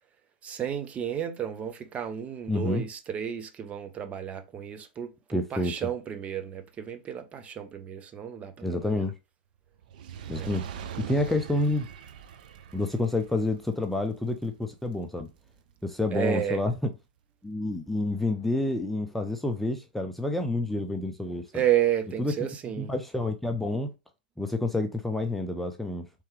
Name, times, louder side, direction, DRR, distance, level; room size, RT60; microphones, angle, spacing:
voice 1, 0.4-9.0 10.3-10.5 16.1-16.6 21.5-22.9, right 10 dB, 25° right, 0.8 m, -31 dB
voice 2, 2.5-2.8 5.3-5.7 8.6-9.1 10.3-10.7 11.1-11.9 12.7-15.3 15.8-16.7 17.4-21.5 22.2-22.3 22.8-23.9 24.4-26.0, left 2 dB, 5° left, 0.5 m, -28 dB
Fire, 9.8-16.2 16.9-17.0, right 8 dB, 65° right, 0.6 m, -43 dB
4.4 x 3.5 x 3.2 m
hypercardioid pair, 110°, 5 cm